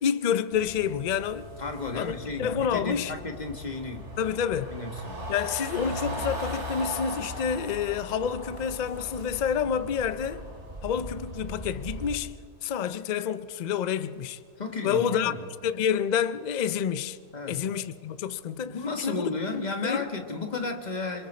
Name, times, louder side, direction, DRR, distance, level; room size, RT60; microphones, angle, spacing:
voice 1, 0.0-1.5 1.9-2.1 2.4-3.1 4.2-4.7 5.3-10.5 10.8-12.3 12.6-14.4 14.8-15.3 15.6-17.2 17.5-19.2 19.5-20.0, left 8 dB, 70° left, 0.4 m, -28 dB
sound 1, 0.5-12.1, equal, 50° right, 2.9 m, -38 dB
voice 2, 1.6-4.1 4.7-5.3 14.6-15.4 17.3-17.6 18.6-21.3, left 3 dB, 30° left, 1.6 m, -33 dB
28.0 x 22.0 x 4.3 m
omnidirectional pair, 1.5 m